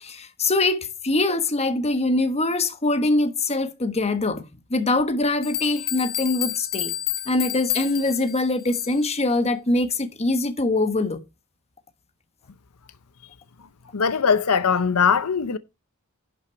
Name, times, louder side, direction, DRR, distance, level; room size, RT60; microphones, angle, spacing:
voice 1, 0.0-6.9 7.3-11.2, left 2 dB, 30° left, 1.3 m, -23 dB
sound 1, 5.0-5.1 5.4-9.1, left 11 dB, 45° left, 2.5 m, -30 dB
voice 2, 13.9-15.6, left 6 dB, 80° left, 0.7 m, -20 dB
11.0 x 6.0 x 4.6 m
head